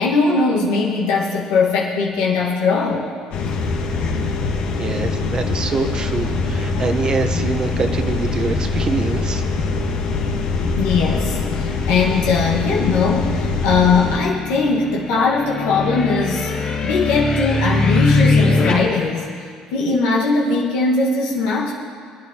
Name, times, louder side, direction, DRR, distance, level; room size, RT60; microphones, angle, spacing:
voice 1, 0.0-3.0 10.8-16.5 16.8-19.3 19.7-21.7, left 4 dB, 90° left, -4 dB, 1.5 m, -19 dB
sound 1, 3.3-14.2, left 3 dB, 70° left, 1.3 m, -23 dB
voice 2, 4.8-9.4, right 4 dB, 35° right, 7 dB, 0.9 m, -25 dB
sound 2, 13.8-18.7, left 3 dB, 55° left, 3.0 m, -21 dB
22.0 x 9.1 x 2.9 m, 2.1 s
supercardioid pair, 85°, 2 cm